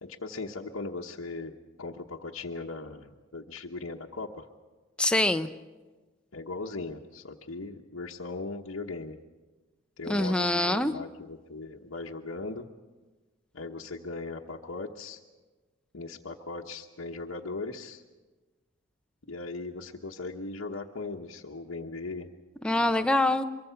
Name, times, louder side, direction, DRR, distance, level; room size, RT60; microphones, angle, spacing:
voice 1, 0.0-1.5 1.8-4.5 6.3-9.2 10.0-12.7 13.5-15.2 15.9-18.0 19.3-22.3 22.7-23.0, left 3 dB, 85° left, -2 dB, 1.1 m, -38 dB
voice 2, 5.0-5.5 10.1-10.9 22.6-23.4, left 1 dB, 5° left, 7 dB, 0.7 m, -24 dB
24.0 x 23.0 x 5.8 m, 1.3 s
head